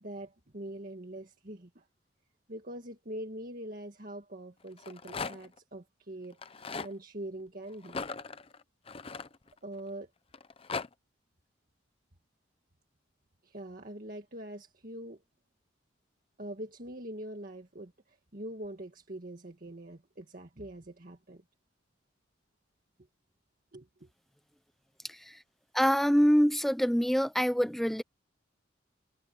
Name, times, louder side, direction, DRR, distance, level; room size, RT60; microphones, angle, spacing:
voice 1, 0.0-1.8 2.5-8.0 9.6-10.1 13.4-15.2 16.4-21.4 23.7-24.1, right 1 dB, 50° right, 1.9 m, -43 dB
Rattle, 4.7-5.6 6.3-6.9 7.8-9.8 10.3-10.9, left 4 dB, 30° left, 0.7 m, -38 dB
voice 2, 25.7-28.0, equal, ahead, 0.9 m, -25 dB
head